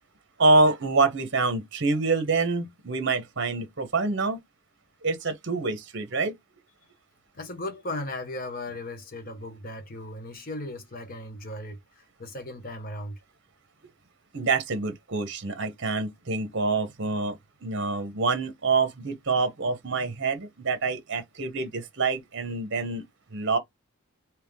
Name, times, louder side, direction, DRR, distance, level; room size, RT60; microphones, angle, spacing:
voice 1, 0.4-4.4 5.0-6.4 14.3-23.6, right 3 dB, 55° right, 0.8 m, -26 dB
voice 2, 7.3-13.2, left 1 dB, 40° left, 0.8 m, -37 dB
3.4 x 2.9 x 3.5 m
head